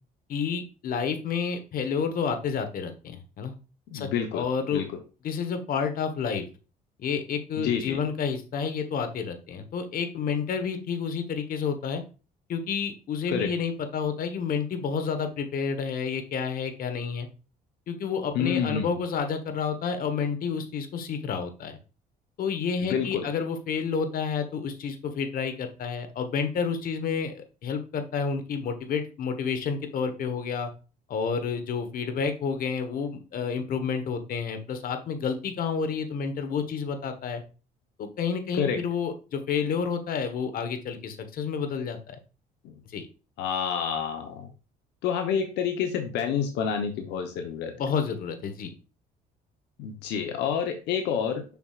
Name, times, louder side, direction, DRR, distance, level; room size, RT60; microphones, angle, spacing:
voice 1, 0.3-3.5 3.9-4.8 5.2-6.4 7.0-12.0 12.5-17.3 17.9-21.8 22.4-30.7 31.1-37.4 38.0-42.2 42.9-43.1 47.7-48.7, left 6 dB, 60° left, 8 dB, 1.3 m, -30 dB
voice 2, 3.9-4.9 7.6-8.0 13.3-13.5 18.3-18.9 22.8-23.3 38.5-38.8 42.6-42.7 43.4-44.5 45.0-47.8 49.8-51.4, left 7 dB, 85° left, 5 dB, 0.9 m, -28 dB
7.0 x 6.0 x 2.5 m, 0.33 s
cardioid pair, 110°, 17 cm